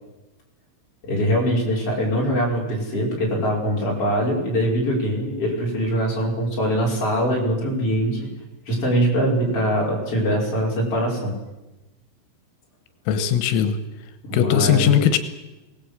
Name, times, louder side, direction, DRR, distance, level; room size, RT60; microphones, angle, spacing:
voice 1, 1.0-8.2 8.7-11.4 14.3-15.0, equal, 30° left, -3 dB, 6.3 m, -22 dB
voice 2, 13.1-13.8 14.3-15.2, left 9 dB, 90° left, 10 dB, 3.8 m, -19 dB
23.5 x 18.0 x 8.1 m, 1.0 s
omnidirectional pair, 5.6 m